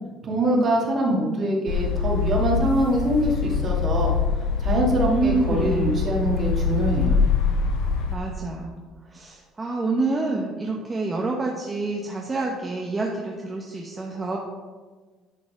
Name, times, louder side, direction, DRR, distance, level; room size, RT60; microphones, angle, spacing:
voice 1, 0.2-4.1 4.6-7.2, right 1 dB, 45° right, -2 dB, 2.2 m, -24 dB
sound 1, 1.7-8.2, left 6 dB, 80° left, 1.1 m, -24 dB
voice 2, 5.0-6.0 8.1-8.8 9.1-14.4, right 3 dB, 25° right, -1 dB, 1.0 m, -27 dB
10.0 x 4.0 x 5.0 m, 1.4 s
supercardioid pair, 90°, 0 cm